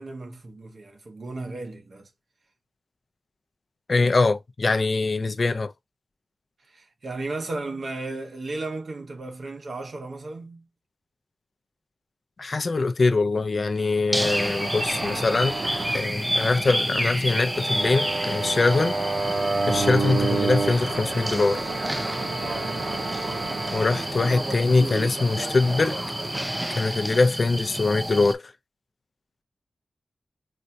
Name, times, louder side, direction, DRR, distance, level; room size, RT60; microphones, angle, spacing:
voice 1, 0.0-2.1 6.7-10.7 22.4-23.0, right 2 dB, 65° right, 1.0 m, -35 dB
voice 2, 3.9-5.7 12.4-15.6 15.9-18.9 19.7-21.6 23.7-26.0 26.7-28.5, left 3 dB, 55° left, 0.4 m, -23 dB
sound 1, 14.1-28.3, equal, 10° right, 0.5 m, -30 dB
sound 2, 14.2-26.8, right 3 dB, 90° right, 1.4 m, -30 dB
4.2 x 2.2 x 2.7 m
cardioid pair, 55°, 0 cm